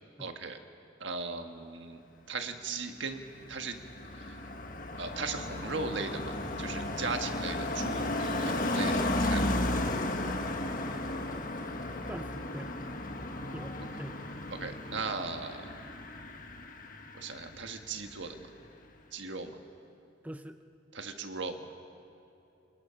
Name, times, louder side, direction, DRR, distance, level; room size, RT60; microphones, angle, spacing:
voice 1, 0.2-0.6 1.0-2.0 2.3-3.2 3.5-3.8 5.0-9.5 14.5-15.7 17.1-18.4 19.1-19.6 20.9-21.6, right 4 dB, 70° right, 6 dB, 1.5 m, -37 dB
Car passing by, 3.0-17.8 18.1-18.4, left 1 dB, 45° left, 1.5 m, -34 dB
voice 2, 10.9-11.4 12.1-12.7 13.5-14.2 20.2-20.6, right 1 dB, 10° right, 8 dB, 0.5 m, -44 dB
28.5 x 20.0 x 5.8 m, 2.8 s
head